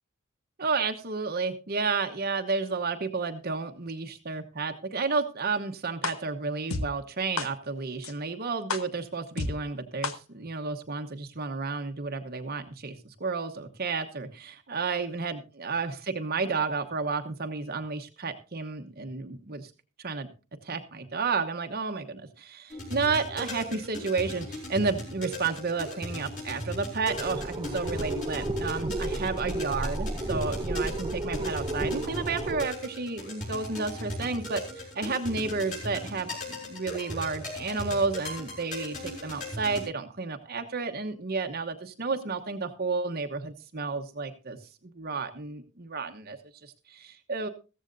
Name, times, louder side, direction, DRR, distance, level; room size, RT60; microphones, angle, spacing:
voice 1, 0.6-19.7 20.0-20.3 20.6-44.6 44.8-47.5, right 4 dB, 45° right, 6 dB, 1.0 m, -31 dB
sound 1, 6.0-6.1 6.7-6.8 7.4-7.5 8.0-8.1 8.7-8.8 9.4-9.5 10.0-10.1, left 3 dB, 70° left, 1.3 m, -29 dB
sound 2, 22.7-39.8, left 1 dB, 35° left, 5.8 m, -38 dB
sound 3, 27.1-32.7, right 2 dB, 20° right, 0.6 m, -32 dB
15.0 x 14.5 x 2.6 m, 0.32 s
head